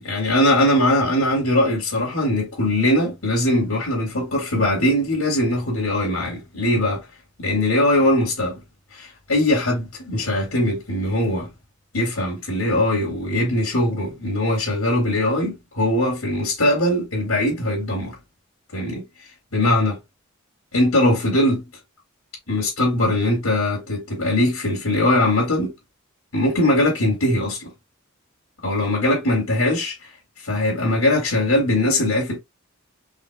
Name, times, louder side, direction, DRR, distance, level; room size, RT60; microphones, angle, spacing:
voice 1, 0.0-7.0 7.4-8.6 8.9-11.5 11.9-18.2 18.7-19.0 19.5-20.0 20.7-21.6 22.5-25.7 26.3-27.7 28.6-29.9 30.4-32.4, left 1 dB, 90° left, 2.5 m, -21 dB
5.0 x 3.9 x 2.4 m
head